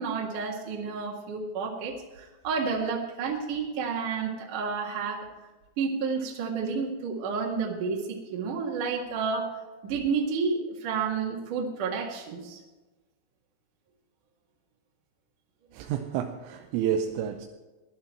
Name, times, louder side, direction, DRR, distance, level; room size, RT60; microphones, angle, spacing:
voice 1, 0.0-5.3 5.8-9.5 9.8-12.6, right 5 dB, 55° right, 2.6 m, -30 dB
voice 2, 15.7-17.5, right 9 dB, 80° right, 3.2 m, -30 dB
18.5 x 12.0 x 4.4 m
omnidirectional pair, 5.9 m